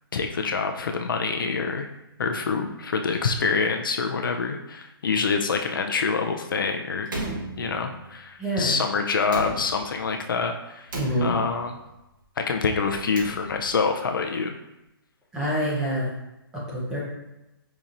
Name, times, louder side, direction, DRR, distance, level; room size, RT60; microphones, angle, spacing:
voice 1, 0.1-1.9 2.2-7.1 7.6-10.9 11.2-11.8 12.4-14.5, left 5 dB, 60° left, 4 dB, 0.4 m, -26 dB
Slam, 7.1-8.2 9.2-10.1 10.9-11.8 12.9-13.9, right 1 dB, 55° right, 1.0 m, -35 dB
voice 2, 8.4-8.8 10.9-11.4 15.3-16.1 16.5-17.0, equal, 5° right, -7 dB, 0.6 m, -26 dB
5.3 x 2.9 x 2.5 m, 0.93 s
hypercardioid pair, 170°, 13 cm